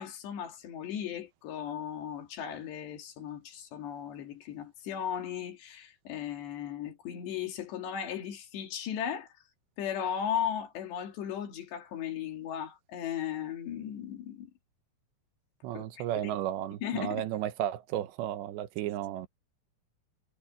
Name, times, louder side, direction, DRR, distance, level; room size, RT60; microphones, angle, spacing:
voice 1, 0.0-9.3 9.8-14.5 15.7-16.3 16.8-17.2, left 9 dB, 75° left, 4.6 m, -36 dB
voice 2, 15.6-19.3, right 12 dB, 85° right, 3.3 m, -33 dB
omnidirectional pair, 5.0 m